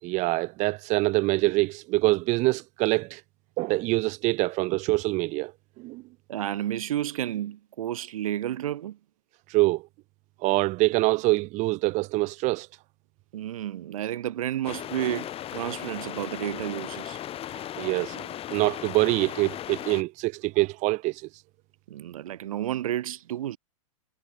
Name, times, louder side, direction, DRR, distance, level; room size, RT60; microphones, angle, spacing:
voice 1, 0.0-3.2 3.6-5.5 5.8-6.0 9.5-9.8 10.4-12.7 17.8-21.2, right 22 dB, 40° right, 1.4 m, -25 dB
voice 2, 6.3-9.0 13.3-17.2 21.9-23.6, right 12 dB, 75° right, 2.5 m, -31 dB
sound 1, 14.6-20.0, left 12 dB, 30° left, 7.7 m, -37 dB
hypercardioid pair, 110°, 18 cm